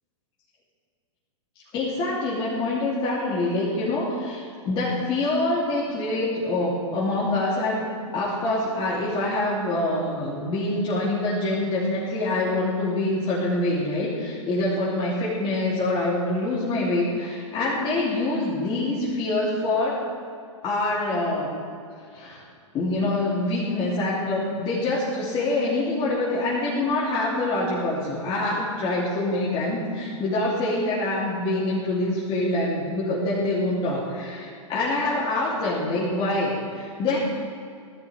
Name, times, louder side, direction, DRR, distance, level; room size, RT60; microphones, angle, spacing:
voice 1, 1.7-7.9 8.1-20.0 20.6-21.5 22.1-22.4 22.7-37.2, left 2 dB, 30° left, -8 dB, 3.1 m, -25 dB
17.5 x 13.5 x 3.5 m, 2.4 s
figure-of-eight pair, 105°, 17 cm